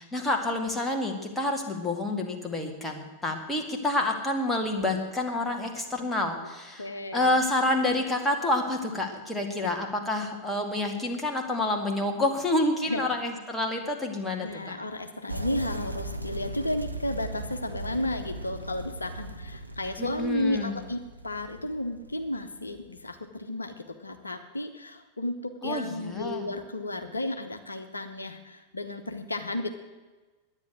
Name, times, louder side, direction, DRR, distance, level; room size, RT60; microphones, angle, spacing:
voice 1, 0.0-14.8 20.0-20.8 25.6-26.5, left 2 dB, 10° left, 1 dB, 2.1 m, -28 dB
voice 2, 6.8-7.3 9.6-9.7 12.9-13.0 14.4-29.7, left 1 dB, 80° left, 7 dB, 0.9 m, -33 dB
sound 1, 15.3-23.0, right 2 dB, 90° right, 0.7 m, -38 dB
10.5 x 9.8 x 9.2 m, 1.2 s
figure-of-eight pair, 90°, 0 cm